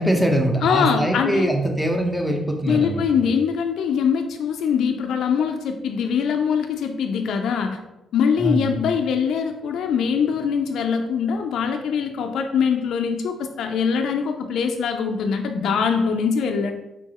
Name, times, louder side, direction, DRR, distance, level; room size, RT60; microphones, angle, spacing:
voice 1, 0.0-3.0 8.4-8.8, right 1 dB, ahead, 2 dB, 0.8 m, -22 dB
voice 2, 0.6-1.5 2.6-7.8 8.1-16.7, left 6 dB, 75° left, 4 dB, 0.4 m, -23 dB
4.5 x 3.8 x 2.9 m, 0.96 s
cardioid pair, 90°, 0 cm